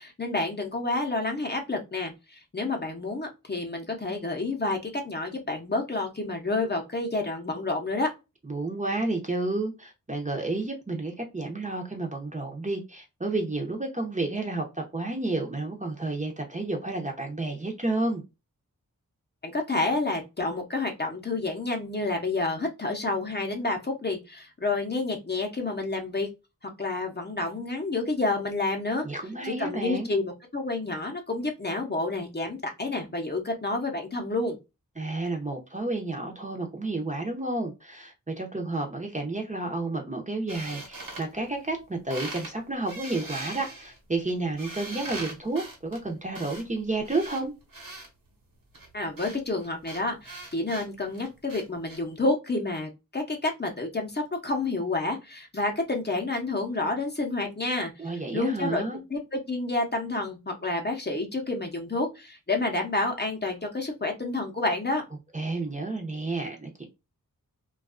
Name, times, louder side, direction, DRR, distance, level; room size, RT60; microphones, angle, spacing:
voice 1, 0.0-8.1 19.4-26.3 26.8-29.0 29.4-34.6 48.9-58.8 59.1-65.0, left 2 dB, 30° left, 0.7 m, -29 dB
voice 2, 8.4-18.2 29.0-30.1 35.0-47.5 58.0-59.0 65.3-66.8, right 2 dB, 20° right, 0.6 m, -31 dB
sound 1, 40.5-41.8 42.1-42.5 42.8-48.1 48.7-52.0, right 2 dB, 75° right, 1.0 m, -41 dB
2.5 x 2.3 x 2.4 m
wide cardioid pair, 80°, 34 cm